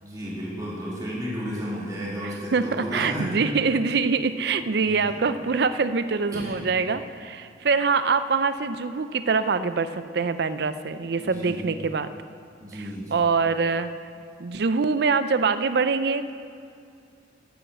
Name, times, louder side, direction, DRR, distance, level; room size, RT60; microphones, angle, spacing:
voice 1, 0.0-3.4 4.6-5.2 6.3-6.7 11.2-11.6 12.6-13.2, equal, 20° right, -7 dB, 2.6 m, -33 dB
voice 2, 2.2-12.1 13.1-13.9 14.4-16.3, right 4 dB, 60° right, 12 dB, 0.5 m, -24 dB
10.5 x 8.8 x 7.5 m, 2.4 s
head